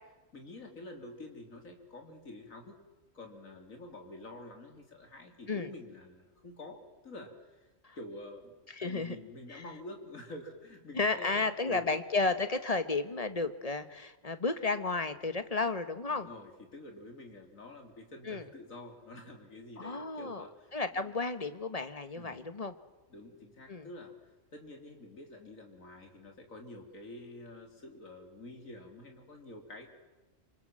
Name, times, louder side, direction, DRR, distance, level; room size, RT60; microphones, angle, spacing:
voice 1, 0.3-2.8 3.1-7.7 8.0-8.5 8.8-11.9 16.1-21.2 22.2-22.4 23.1-24.1 24.5-29.9, left 1 dB, 85° left, 3 dB, 3.5 m, -48 dB
voice 2, 8.7-9.1 9.5-9.6 10.9-16.3 18.2-18.4 19.8-20.4 20.7-22.7 23.7-23.9, left 3 dB, 30° left, 10 dB, 1.3 m, -33 dB
26.5 x 24.5 x 7.6 m, 1.1 s
omnidirectional pair, 1.4 m